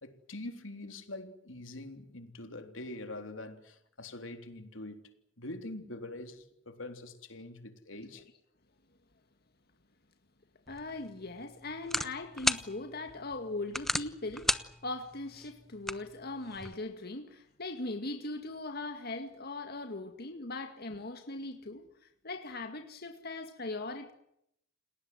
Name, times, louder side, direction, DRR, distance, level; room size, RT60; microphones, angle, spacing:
voice 1, 0.0-5.0 5.4-8.2, left 2 dB, 90° left, 3.7 m, -44 dB
voice 2, 10.7-24.1, left 2 dB, 55° left, 2.2 m, -40 dB
sound 1, 10.7-16.7, left 1 dB, ahead, 1.1 m, -37 dB
29.5 x 19.5 x 7.9 m
head